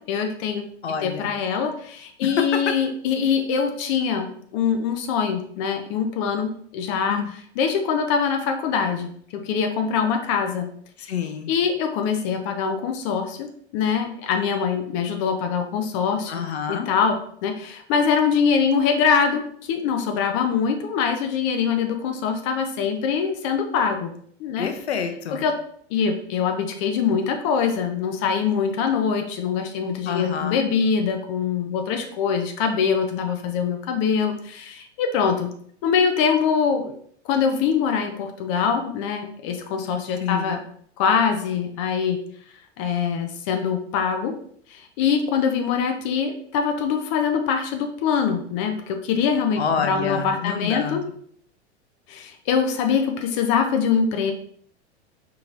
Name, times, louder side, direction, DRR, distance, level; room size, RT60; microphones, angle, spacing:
voice 1, 0.0-0.7 1.0-7.2 7.6-10.7 11.0-11.1 11.5-16.4 16.7-24.1 24.4-24.7 25.3-25.5 25.9-35.5 35.8-36.9 37.2-40.6 41.0-42.2 42.8-44.3 44.7-51.0 52.1-54.3, left 6 dB, 30° left, 5 dB, 0.4 m, -23 dB
voice 2, 0.8-1.3 2.2-2.5 7.1-7.3 11.1-11.5 16.3-16.9 24.6-25.4 30.1-30.6 40.2-40.6 49.6-51.0, left 6 dB, 65° left, 7 dB, 0.6 m, -27 dB
4.6 x 3.0 x 2.5 m, 0.62 s
figure-of-eight pair, 90°, 35 cm